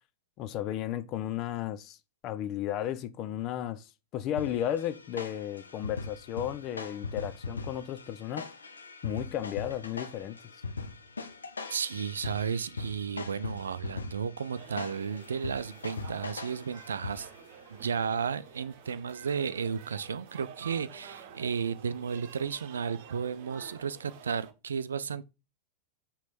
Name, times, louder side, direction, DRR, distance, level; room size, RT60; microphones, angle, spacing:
voice 1, 0.4-2.0 2.2-8.5 9.0-10.4, left 11 dB, 35° left, 0.6 m, -34 dB
sound 1, 4.4-17.5, left 4 dB, 75° left, 0.8 m, -41 dB
voice 2, 11.7-17.3 17.7-25.2, right 6 dB, 70° right, 0.4 m, -33 dB
sound 2, 14.5-24.5, right 8 dB, 50° right, 1.0 m, -50 dB
6.2 x 3.9 x 4.2 m
figure-of-eight pair, 90°, 0 cm